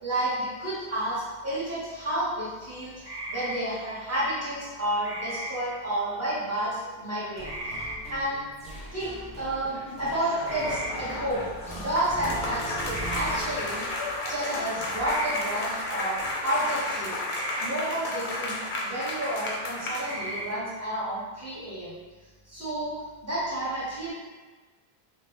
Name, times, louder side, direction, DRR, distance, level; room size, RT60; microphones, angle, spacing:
voice 1, 0.0-8.4 8.9-11.4 11.7-13.9 14.3-17.2 17.6-18.6 18.8-21.9 22.5-22.9 23.2-24.1, right 1 dB, 15° right, -12 dB, 1.3 m, -31 dB
sound 1, 3.0-3.6 5.0-5.5 7.4-7.9 10.4-10.9 12.9-13.2 15.0-15.4 17.2-17.7 20.0-20.5, right 1 dB, 40° right, 1.0 m, -35 dB
sound 2, 7.4-17.1, right 1 dB, 10° left, 0.5 m, -41 dB
sound 3, 9.5-20.5, left 2 dB, 55° left, 0.6 m, -33 dB
2.7 x 2.2 x 3.3 m, 1.3 s
omnidirectional pair, 1.1 m